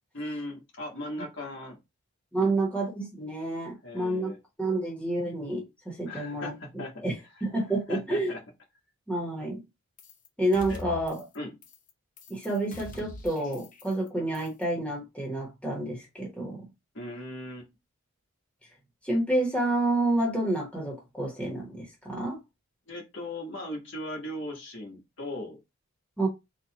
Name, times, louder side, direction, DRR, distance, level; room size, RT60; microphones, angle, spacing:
voice 1, 0.1-1.8 2.4-2.6 3.8-4.4 6.0-7.0 7.9-8.4 10.7-10.8 11.3-11.6 16.9-17.7 22.9-25.6, left 1 dB, 60° left, 1.3 m, -38 dB
voice 2, 2.3-4.3 4.6-6.5 7.0-7.1 7.4-8.3 9.1-9.6 10.4-11.2 12.3-16.6 19.0-22.4 26.2-26.3, right 2 dB, 5° left, 1.2 m, -29 dB
sound 1, 10.0-10.3 10.5-11.4 11.6-11.9 12.2-14.1 14.3-14.6, left 2 dB, 40° left, 0.7 m, -44 dB
4.0 x 2.5 x 2.9 m
head